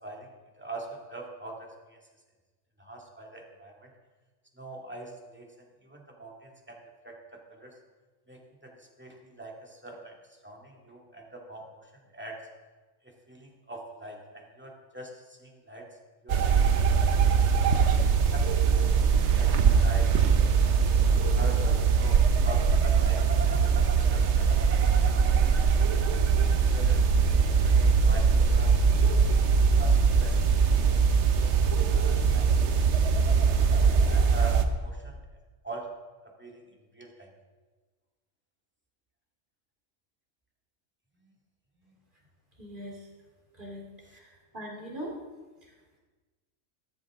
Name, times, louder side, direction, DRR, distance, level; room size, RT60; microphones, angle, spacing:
voice 1, 0.0-2.0 2.8-3.9 4.5-6.8 7.0-7.8 8.3-12.4 13.0-15.9 18.3-20.2 21.3-25.5 25.9-26.1 26.7-29.2 29.8-31.5 31.9-32.8 34.1-35.2 35.6-35.9 36.2-36.6 36.9-37.3 41.2-41.3 41.8-41.9 44.0-44.2, right 2 dB, 10° right, -1 dB, 2.0 m, -44 dB
sound 1, 16.3-34.6, right 5 dB, 60° right, 1.1 m, -22 dB
voice 2, 42.6-43.0 43.6-43.8 44.1-45.1, equal, 40° right, -2 dB, 2.9 m, -40 dB
14.5 x 13.5 x 3.6 m, 1.3 s
omnidirectional pair, 1.4 m